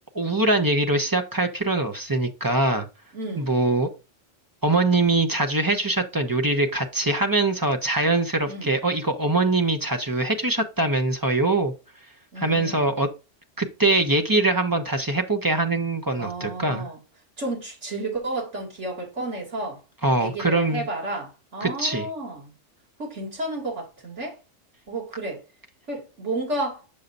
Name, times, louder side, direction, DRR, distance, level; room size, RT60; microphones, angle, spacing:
voice 1, 0.1-2.9 3.4-3.9 4.6-11.7 12.4-13.1 13.6-16.9 20.0-20.9 21.6-22.1, right 2 dB, 20° right, 0.8 m, -23 dB
voice 2, 3.1-3.5 8.4-8.7 12.3-13.0 16.2-17.0 17.4-19.8 20.2-22.5 23.0-24.4 24.9-25.4 25.9-26.8, right 2 dB, 80° right, 3.0 m, -32 dB
7.0 x 6.5 x 2.5 m
omnidirectional pair, 1.2 m